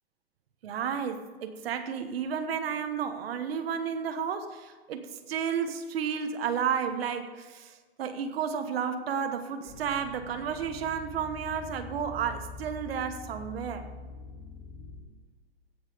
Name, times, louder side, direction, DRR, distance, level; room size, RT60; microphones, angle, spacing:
voice 1, 0.6-13.9, right 7 dB, 70° right, 8 dB, 1.2 m, -32 dB
sound 1, 9.7-15.0, left 3 dB, 35° left, 3.2 m, -44 dB
16.5 x 6.5 x 5.0 m, 1.4 s
supercardioid pair, 170°, 31 cm